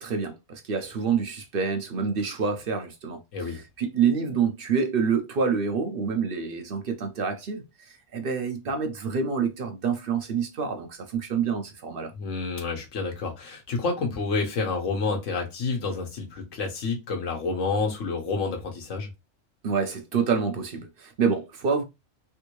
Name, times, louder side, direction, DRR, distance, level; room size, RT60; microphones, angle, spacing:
voice 1, 0.0-12.1 19.6-21.8, right 6 dB, 55° right, 0.7 m, -27 dB
voice 2, 12.1-19.1, left 4 dB, 75° left, 1.4 m, -29 dB
3.4 x 2.6 x 3.0 m
omnidirectional pair, 1.3 m